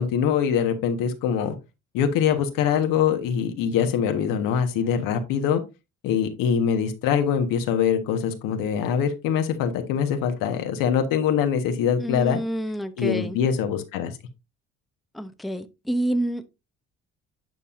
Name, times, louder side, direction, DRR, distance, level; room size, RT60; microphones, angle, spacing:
voice 1, 0.0-1.5 1.9-5.6 6.0-12.4 13.0-14.1, left 8 dB, 75° left, 1.4 m, -23 dB
voice 2, 12.0-13.4 15.1-16.5, right 1 dB, ahead, 0.7 m, -28 dB
9.2 x 5.5 x 2.5 m
supercardioid pair, 70°, 33 cm